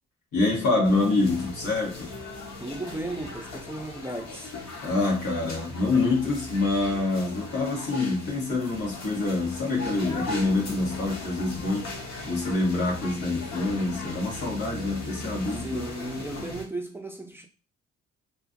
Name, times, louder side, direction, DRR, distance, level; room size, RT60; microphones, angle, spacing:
voice 1, 0.3-2.1 4.8-12.0 12.2-15.8 16.2-16.5, left 3 dB, 90° left, 1.4 m, -26 dB
sound 1, 0.8-16.6, left 2 dB, 60° left, 1.1 m, -39 dB
voice 2, 2.6-4.5 15.6-17.5, right 1 dB, 10° right, 0.5 m, -35 dB
3.0 x 2.4 x 2.5 m
cardioid pair, 90°, 30 cm